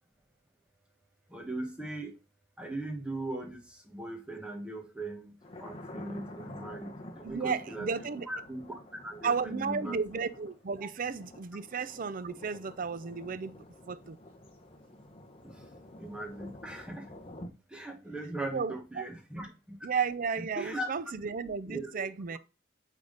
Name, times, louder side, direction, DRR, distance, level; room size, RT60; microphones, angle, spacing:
voice 1, 1.3-2.2 2.6-5.3 5.6-7.9 8.3-10.0 15.4-15.6 16.0-17.1 17.7-19.9 20.6-20.9 21.6-22.1, right 2 dB, 5° right, 1.3 m, -39 dB
Thunder, 5.4-17.5, left 1 dB, 30° left, 0.9 m, -49 dB
voice 2, 7.2-8.3 9.2-14.2 18.5-19.0 19.8-22.4, right 5 dB, 45° right, 0.5 m, -33 dB
8.6 x 3.7 x 3.9 m
head